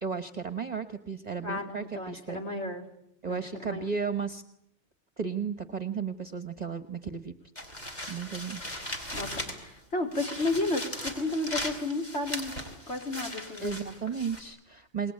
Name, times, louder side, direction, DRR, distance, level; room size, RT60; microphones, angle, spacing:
voice 1, 0.0-2.4 3.2-4.4 5.2-7.6 8.1-8.7 13.6-15.1, right 6 dB, 40° right, 9 dB, 1.3 m, -34 dB
voice 2, 1.4-2.8 3.3-3.8 9.1-12.5 12.9-13.9, left 2 dB, 75° left, 2 dB, 4.2 m, -33 dB
sound 1, 7.5-9.8 10.1-14.4, equal, 40° left, 4.5 m, -38 dB
28.0 x 21.5 x 8.6 m, 0.79 s
omnidirectional pair, 1.2 m